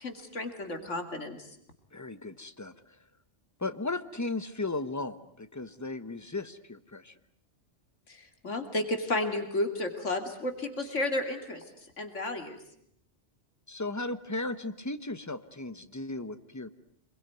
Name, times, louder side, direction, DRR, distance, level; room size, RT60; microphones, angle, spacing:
voice 1, 0.0-1.5 8.1-11.6 12.0-12.6, left 2 dB, 85° left, 6 dB, 3.0 m, -32 dB
voice 2, 1.9-2.7 3.6-7.1 13.7-16.7, left 2 dB, 15° left, 11 dB, 1.1 m, -36 dB
26.5 x 22.5 x 9.3 m, 0.70 s
omnidirectional pair, 1.2 m